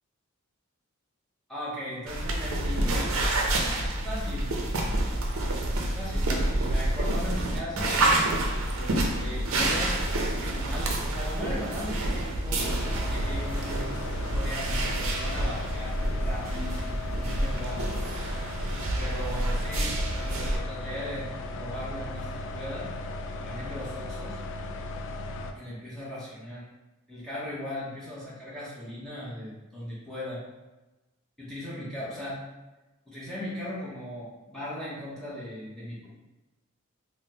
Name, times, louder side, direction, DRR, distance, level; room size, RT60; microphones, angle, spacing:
voice 1, 1.5-3.0 3.6-4.5 5.9-8.0 8.7-13.9 14.3-18.0 19.0-22.9 23.4-24.4 25.5-26.7 27.1-30.4 31.4-32.4 33.1-36.1, left 1 dB, 5° left, -9 dB, 0.7 m, -38 dB
sound 1, 2.1-20.6, right 1 dB, 70° right, 0.5 m, -28 dB
sound 2, 12.6-25.5, left 2 dB, 60° left, 0.3 m, -37 dB
3.7 x 2.0 x 2.8 m, 1.1 s
head